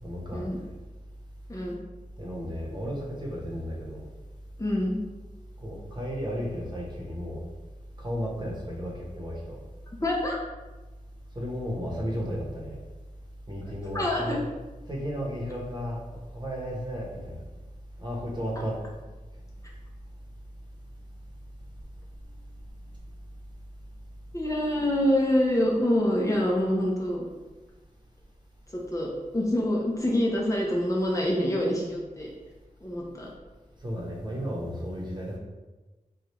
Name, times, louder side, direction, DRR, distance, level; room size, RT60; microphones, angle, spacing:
voice 1, 0.0-0.7 2.2-4.1 5.6-7.4 8.0-9.6 11.3-12.8 13.5-14.4 14.9-16.0 16.3-17.4 18.0-18.8 33.8-35.4, equal, 30° right, -3 dB, 1.0 m, -34 dB
voice 2, 1.5-1.8 4.6-5.0 10.0-10.4 13.9-14.4 24.3-27.3 28.7-32.3 32.8-33.3, left 1 dB, 25° left, -3 dB, 0.6 m, -26 dB
3.2 x 2.4 x 3.0 m, 1.2 s
cardioid pair, 50°, 14 cm